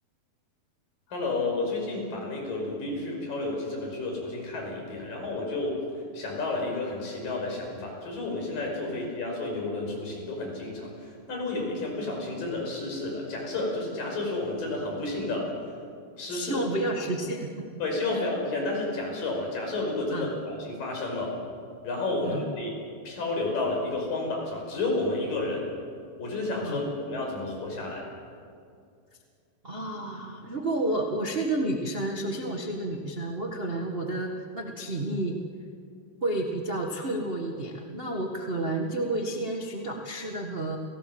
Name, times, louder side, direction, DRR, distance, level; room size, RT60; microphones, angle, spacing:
voice 1, 1.1-5.8 6.1-15.5 16.2-16.7 17.8-21.4 21.8-22.7 23.1-25.6 26.2-28.0, left 2 dB, 60° left, 0 dB, 7.1 m, -31 dB
voice 2, 16.3-17.7 18.1-18.2 20.1-20.3 22.2-22.4 26.6-26.8 29.6-35.4 36.2-40.8, right 2 dB, 75° right, 1 dB, 0.5 m, -31 dB
29.5 x 18.0 x 7.9 m, 2.3 s
omnidirectional pair, 4.4 m